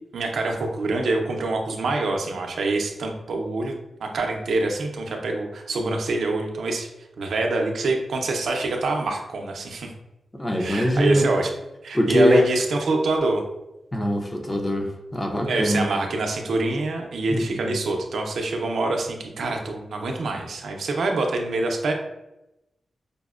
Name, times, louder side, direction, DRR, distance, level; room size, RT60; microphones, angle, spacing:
voice 1, 0.1-3.7 4.0-6.9 7.2-9.9 10.6-11.5 11.8-13.4 15.5-21.9, right 2 dB, 80° right, 2 dB, 0.5 m, -25 dB
voice 2, 10.4-11.3 11.9-12.5 13.9-15.9 17.3-17.8, equal, 20° left, 2 dB, 0.5 m, -22 dB
5.1 x 2.0 x 2.4 m, 0.92 s
wide cardioid pair, 125°, 0 cm